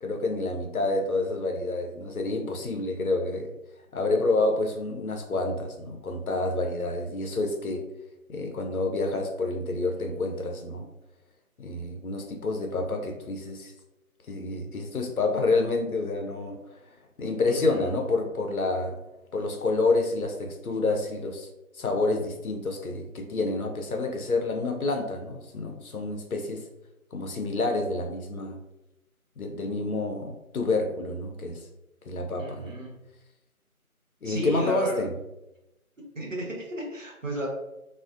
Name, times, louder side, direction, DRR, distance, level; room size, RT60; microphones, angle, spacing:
voice 1, 0.0-3.5 3.9-7.8 8.3-10.9 11.6-13.7 14.3-16.6 17.2-19.0 19.3-21.5 21.7-26.6 27.1-28.6 29.4-31.6 32.1-32.8 34.2-35.1, left 2 dB, 75° left, 3 dB, 0.6 m, -28 dB
voice 2, 17.5-17.9 32.4-32.9 34.2-35.0 36.1-37.5, right 1 dB, 60° right, -1 dB, 0.8 m, -33 dB
2.5 x 2.1 x 2.4 m, 0.92 s
figure-of-eight pair, 170°, 44 cm